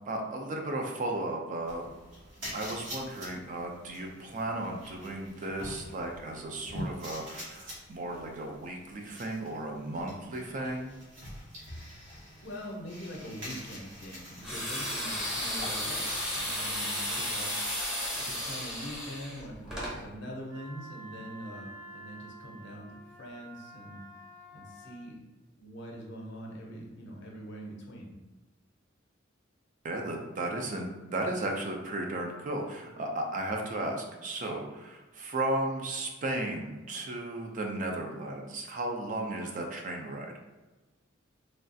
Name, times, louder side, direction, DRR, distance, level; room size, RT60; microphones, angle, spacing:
voice 1, 0.1-1.9 2.5-11.0 29.8-40.3, right 2 dB, 40° right, 2 dB, 0.4 m, -35 dB
sound 1, 1.7-17.3, equal, 65° right, 1.1 m, -46 dB
voice 2, 12.4-17.5 17.8-18.0 18.2-24.0 24.5-25.2 25.6-28.1, equal, 60° left, -1 dB, 0.6 m, -43 dB
sound 2, 14.4-20.0, equal, 5° right, 0.6 m, -33 dB
Wind instrument woodwind instrument, 20.5-25.0, right 1 dB, 90° right, 0.8 m, -49 dB
3.2 x 2.3 x 2.6 m, 1.2 s
head